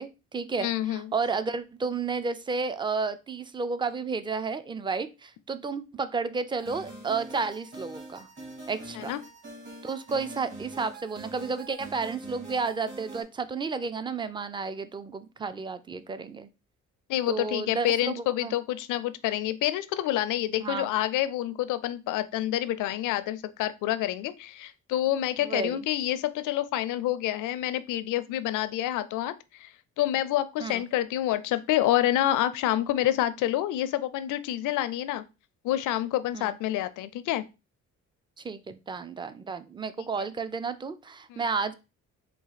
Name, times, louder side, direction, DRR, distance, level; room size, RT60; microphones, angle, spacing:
voice 1, 0.0-8.3 8.7-9.1 9.8-16.5 17.3-18.5 20.6-20.9 25.4-25.8 30.6-30.8 36.3-36.6 38.4-41.7, right 4 dB, 15° right, 13 dB, 0.4 m, -32 dB
voice 2, 0.6-1.1 8.9-9.2 17.1-29.7 30.0-35.2 35.6-37.4 40.0-40.1 41.3-41.4, left 13 dB, 85° left, 13 dB, 0.5 m, -28 dB
sound 1, 6.6-13.2, right 2 dB, 40° right, 2.3 m, -44 dB
4.1 x 2.4 x 4.0 m, 0.28 s
cardioid pair, 90°, 30 cm